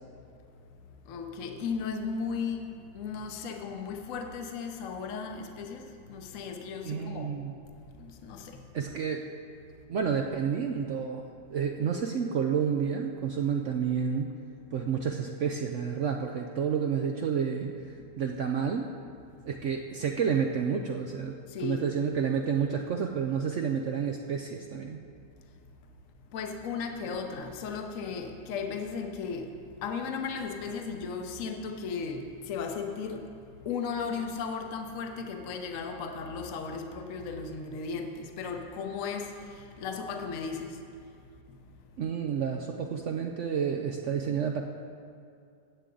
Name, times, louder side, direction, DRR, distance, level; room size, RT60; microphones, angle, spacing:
voice 1, 1.0-7.3 7.9-8.6 21.5-21.9 26.3-41.6, left 5 dB, 55° left, 4 dB, 1.1 m, -36 dB
voice 2, 6.8-7.5 8.7-9.3 9.9-11.2 11.5-14.3 14.7-18.9 19.5-21.3 21.6-25.0 42.0-44.6, right 7 dB, 70° right, 2 dB, 0.7 m, -30 dB
16.0 x 8.3 x 3.8 m, 2.4 s
omnidirectional pair, 1.8 m